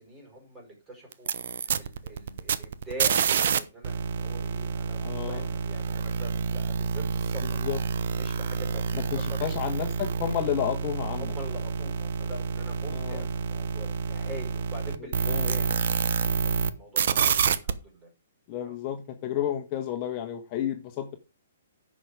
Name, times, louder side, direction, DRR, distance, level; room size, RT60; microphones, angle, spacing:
voice 1, 0.0-5.0 5.3-7.6 8.1-9.2 11.1-15.9 16.4-18.1 18.6-18.8, right 1 dB, 15° right, 0 dB, 5.1 m, -44 dB
sound 1, 1.1-3.6 3.8-16.7 17.0-17.7, right 6 dB, 60° right, 0.9 m, -28 dB
voice 2, 5.0-5.5 7.6-7.8 8.9-11.3 12.9-13.2 15.3-15.5 17.1-17.4 18.5-21.1, left 10 dB, 30° left, 4 dB, 1.5 m, -31 dB
9.8 x 6.4 x 4.9 m, 0.28 s
hypercardioid pair, 150°, 0 cm